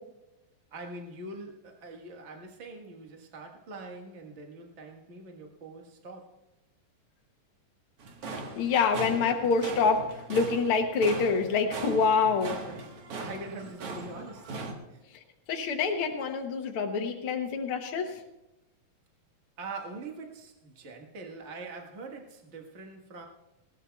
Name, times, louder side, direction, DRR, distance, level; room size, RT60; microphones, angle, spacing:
voice 1, 0.7-6.4 12.6-12.9 13.2-14.6 14.9-15.0 19.6-23.3, right 3 dB, 80° right, 2 dB, 0.6 m, -43 dB
sound 1, 8.0-14.7, right 3 dB, 50° right, 2.0 m, -39 dB
voice 2, 8.6-12.6 15.5-18.2, left 5 dB, 75° left, 3 dB, 1.2 m, -26 dB
19.5 x 17.0 x 2.3 m, 0.94 s
omnidirectional pair, 3.9 m